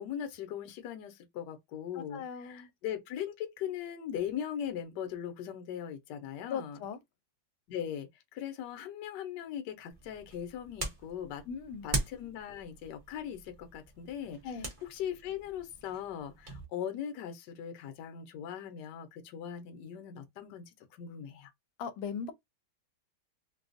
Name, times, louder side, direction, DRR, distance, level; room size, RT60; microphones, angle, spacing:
voice 1, 0.0-6.8 7.7-11.4 11.8-20.6 20.9-21.5, left 9 dB, 65° left, 1.2 m, -40 dB
voice 2, 1.9-2.7 6.5-7.0 11.5-11.9 14.4-14.7 21.8-22.3, left 6 dB, 85° left, 1.4 m, -38 dB
sound 1, 9.9-16.6, right 2 dB, 35° right, 0.9 m, -41 dB
3.9 x 2.3 x 2.5 m
omnidirectional pair, 2.2 m